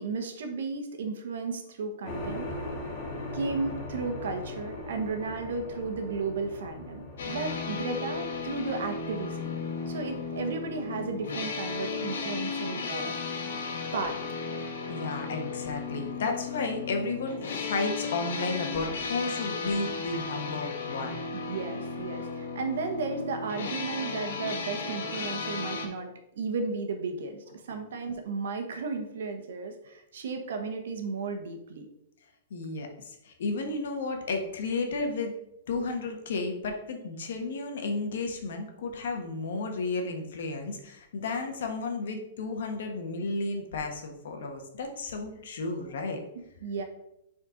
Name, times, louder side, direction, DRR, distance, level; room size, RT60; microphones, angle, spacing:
voice 1, 0.0-2.5 3.3-9.6 9.9-13.4 13.9-14.2 21.3-31.9 35.8-35.9 46.3-46.8, right 4 dB, 70° right, 6 dB, 1.2 m, -34 dB
sound 1, 2.0-12.2, left 2 dB, 20° left, 1.6 m, -40 dB
sound 2, 7.2-25.9, left 4 dB, 85° left, 1.6 m, -35 dB
voice 2, 14.9-21.1 32.5-35.3 35.7-46.2, left 3 dB, 65° left, 4 dB, 1.4 m, -33 dB
6.5 x 4.3 x 5.2 m, 0.82 s
supercardioid pair, 180°, 0 cm